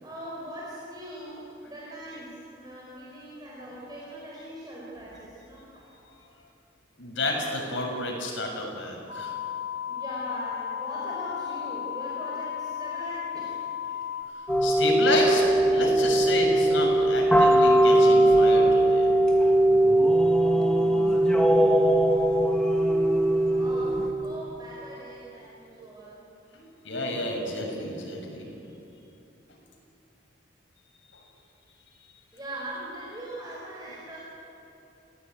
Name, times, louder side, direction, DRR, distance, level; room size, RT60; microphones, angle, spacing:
voice 1, 0.0-5.9 9.9-14.0 23.6-26.2 32.3-34.2, right 1 dB, 20° right, -6 dB, 5.0 m, -40 dB
voice 2, 7.0-9.3 14.6-15.4 15.7-19.1 26.8-28.5, left 2 dB, 80° left, 0 dB, 6.6 m, -30 dB
sound 1, 9.1-14.2, left 9 dB, 60° left, 2.3 m, -34 dB
sound 2, 14.5-24.1, right 1 dB, 5° left, 2.2 m, -20 dB
28.5 x 17.5 x 9.3 m, 2.9 s
head